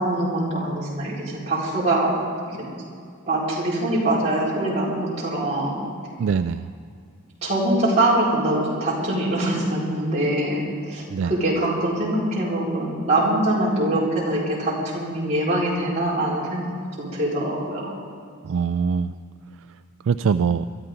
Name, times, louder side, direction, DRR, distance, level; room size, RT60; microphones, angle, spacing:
voice 1, 0.0-2.1 2.5-2.6 3.3-5.8 7.4-16.7 17.0-17.9, right 1 dB, 30° right, -7 dB, 4.8 m, -23 dB
voice 2, 6.2-6.7 11.1-11.3 18.4-19.1 20.1-20.7, right 6 dB, 60° right, 11 dB, 0.3 m, -22 dB
22.5 x 13.5 x 3.9 m, 2.3 s
head